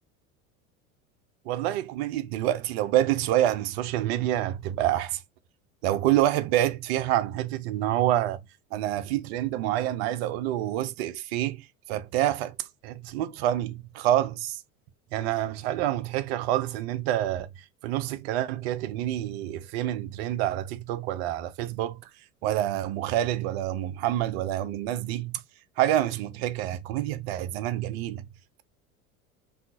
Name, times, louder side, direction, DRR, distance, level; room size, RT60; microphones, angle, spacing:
voice 1, 1.5-5.2 5.8-8.4 8.7-12.6 12.8-14.6 15.1-17.5 17.8-22.1 22.4-25.4 25.8-28.2, right 13 dB, 45° right, 0.5 m, -27 dB
2.7 x 2.3 x 2.4 m
figure-of-eight pair, 75°, 43 cm